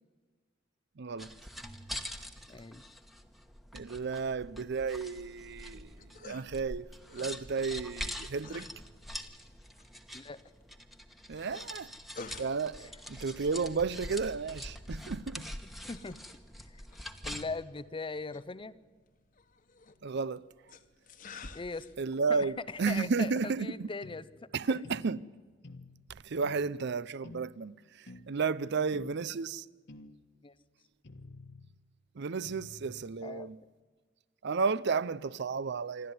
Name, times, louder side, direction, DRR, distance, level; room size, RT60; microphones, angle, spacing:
voice 1, 1.0-1.3 3.7-8.7 11.3-11.9 12.4-15.5 20.0-20.5 22.0-23.9 24.5-25.3 26.1-29.7 32.1-33.6 34.4-36.1, right 5 dB, 60° right, 0.6 m, -33 dB
sound 1, 1.2-17.6, equal, ahead, 1.2 m, -44 dB
voice 2, 2.5-3.0 10.1-10.4 15.9-16.2 17.2-18.8 21.5-21.9 22.3-22.5 22.9-24.2 30.4-30.5 33.2-33.5, left 3 dB, 25° left, 0.6 m, -39 dB
sound 2, 5.5-24.1, left 3 dB, 45° left, 1.3 m, -54 dB
sound 3, 24.0-24.2 24.8-25.1 25.6-25.9 26.4-26.7 27.2-27.5 28.1-28.3 28.9-29.2 29.9-30.2 31.0-31.7 32.4-33.1, left 2 dB, 60° left, 1.4 m, -49 dB
27.0 x 12.5 x 9.4 m
head